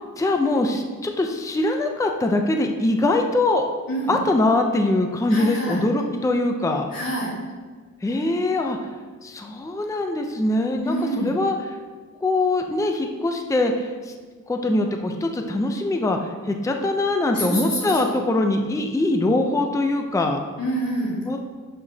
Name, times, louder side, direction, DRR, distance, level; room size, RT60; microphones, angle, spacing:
voice 1, 0.2-3.6 4.1-6.9 8.0-8.9 9.2-11.8 12.2-14.1 14.5-20.4 21.3-21.4, left 2 dB, 10° left, 4 dB, 0.5 m, -22 dB
voice 2, 5.3-5.8 6.9-7.3 10.8-11.4 17.3-18.2 20.6-21.2, right 1 dB, 90° left, -5 dB, 2.1 m, -27 dB
11.0 x 4.8 x 2.8 m, 1.4 s
wide cardioid pair, 115°, 33 cm